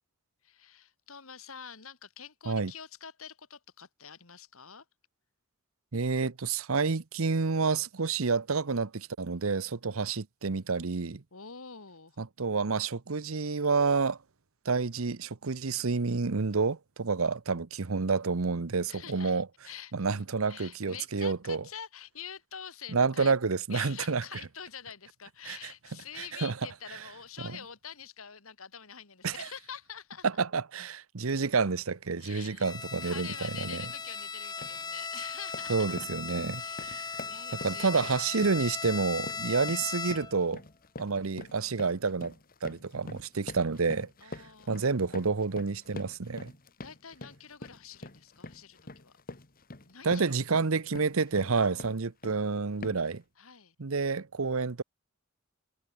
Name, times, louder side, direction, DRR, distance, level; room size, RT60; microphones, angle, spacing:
voice 1, 0.4-4.9 11.3-12.2 18.9-23.4 23.7-30.3 32.2-32.7 33.0-36.1 36.5-38.4 39.0-39.5 44.2-44.9 46.8-49.1 49.8-50.4 51.5-51.9 53.4-53.8, left 8 dB, 75° left, 2.6 m, -46 dB
voice 2, 5.9-11.2 12.2-14.2 14.6-19.5 19.9-21.6 22.9-24.2 25.5-25.7 26.2-26.5 29.2-29.5 30.2-33.3 33.6-33.8 35.7-37.1 37.6-40.6 41.0-42.3 42.6-46.5 50.0-53.2 53.8-54.8, right 4 dB, 75° right, 0.9 m, -29 dB
Bowed string instrument, 32.6-40.5, left 5 dB, 20° left, 0.5 m, -38 dB
sound 1, 33.8-34.0 34.4-34.8 35.2-52.5 52.8-53.2, left 2 dB, 45° left, 1.9 m, -46 dB
head